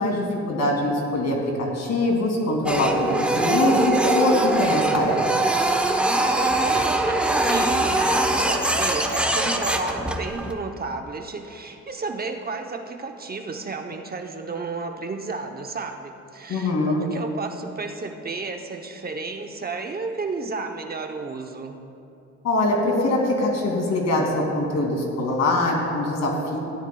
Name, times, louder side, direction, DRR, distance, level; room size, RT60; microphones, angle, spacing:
voice 1, 0.0-5.2 16.5-17.1 22.4-26.6, left 1 dB, 60° left, 0 dB, 2.5 m, -23 dB
Printer, 2.7-10.5, right 2 dB, 5° right, 0.9 m, -22 dB
voice 2, 6.4-21.8, right 4 dB, 30° right, 4 dB, 0.8 m, -32 dB
17.0 x 11.0 x 2.3 m, 2.7 s
cardioid pair, 90°, 30 cm